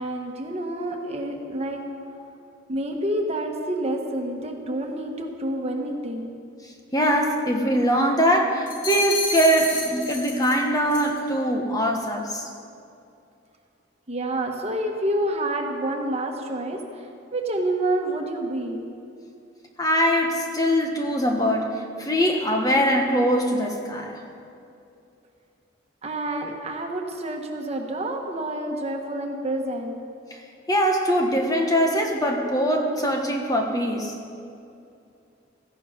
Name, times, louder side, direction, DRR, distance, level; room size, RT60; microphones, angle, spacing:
voice 1, 0.0-1.8 2.7-6.3 14.1-18.9 26.0-30.0, right 1 dB, 35° right, 2 dB, 1.5 m, -28 dB
voice 2, 6.9-12.5 19.8-24.2 30.7-34.2, equal, 20° left, 2 dB, 1.3 m, -22 dB
sound 1, 8.7-10.6 10.9-11.2, left 2 dB, 40° left, 3.6 m, -30 dB
17.0 x 14.5 x 5.2 m, 2.6 s
head